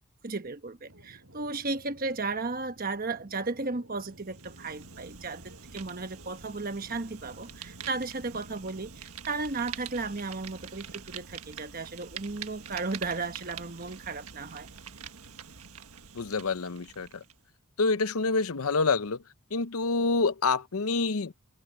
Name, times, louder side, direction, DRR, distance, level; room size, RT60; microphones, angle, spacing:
voice 1, 0.2-14.7, right 3 dB, 40° right, 1.2 m, -35 dB
sound 1, 0.8-9.0, right 1 dB, 65° right, 7.6 m, -54 dB
Fire, 4.0-17.4, right 7 dB, 85° right, 1.6 m, -46 dB
voice 2, 16.1-17.1 17.8-19.2 19.5-21.3, left 4 dB, 80° left, 0.8 m, -27 dB
head